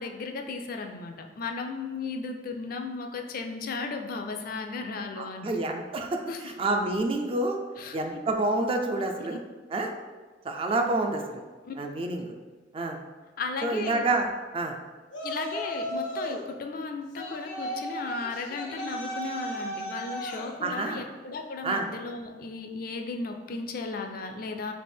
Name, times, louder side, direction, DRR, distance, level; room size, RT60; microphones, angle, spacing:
voice 1, 0.0-5.5 6.3-6.5 7.8-8.0 11.6-11.7 13.4-14.1 15.2-24.7, left 4 dB, 50° left, 5 dB, 0.4 m, -35 dB
voice 2, 5.2-6.2 6.6-7.6 7.9-9.4 9.7-9.9 10.4-11.4 11.8-12.3 12.7-13.0 13.6-14.3 14.5-14.7 20.6-21.0 21.6-21.9, right 2 dB, 30° right, 3 dB, 0.3 m, -28 dB
Yell, 15.1-16.5 17.1-20.5, equal, 90° left, 0.7 m, -35 dB
3.3 x 2.8 x 4.3 m, 1.3 s
head